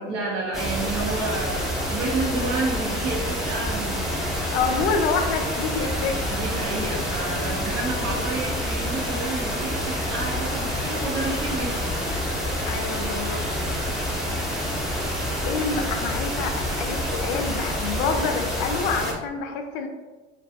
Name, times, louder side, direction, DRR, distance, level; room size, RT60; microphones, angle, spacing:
voice 1, 0.0-4.1 6.3-12.0, right 3 dB, 70° right, -1 dB, 0.8 m, -30 dB
sound 1, 0.5-19.1, equal, ahead, 0.6 m, -27 dB
sound 2, 4.2-13.7, left 2 dB, 30° left, 0.8 m, -41 dB
voice 2, 4.5-6.2 12.7-13.4 15.4-19.9, left 5 dB, 65° left, 5 dB, 0.5 m, -27 dB
2.3 x 2.3 x 2.6 m, 1.2 s
hypercardioid pair, 75°, 34 cm